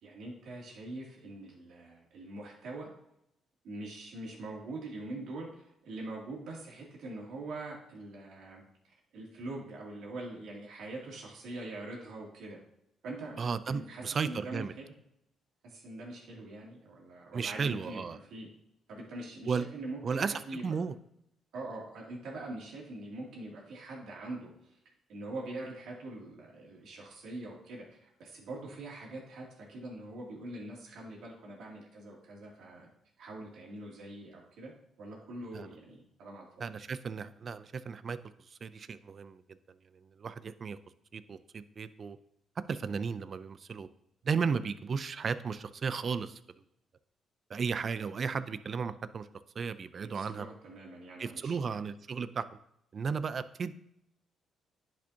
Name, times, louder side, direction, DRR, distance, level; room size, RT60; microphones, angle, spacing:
voice 1, 0.0-2.9 3.6-8.6 9.1-12.6 13.0-14.9 15.6-18.5 18.9-20.7 21.5-24.8 25.1-32.9 33.2-34.7 35.0-36.7 50.0-51.7, right 2 dB, 75° right, -3 dB, 2.6 m, -43 dB
voice 2, 13.4-14.7 17.3-18.2 19.5-19.7 20.0-20.9 35.5-35.7 36.6-38.2 38.5-39.4 40.0-40.8 41.1-42.2 42.7-43.9 44.2-46.4 47.5-49.3 49.6-50.5 51.2-52.4 52.9-53.7, right 5 dB, 45° right, 14 dB, 0.4 m, -34 dB
10.5 x 5.1 x 2.8 m, 0.78 s
cardioid pair, 90°, 0 cm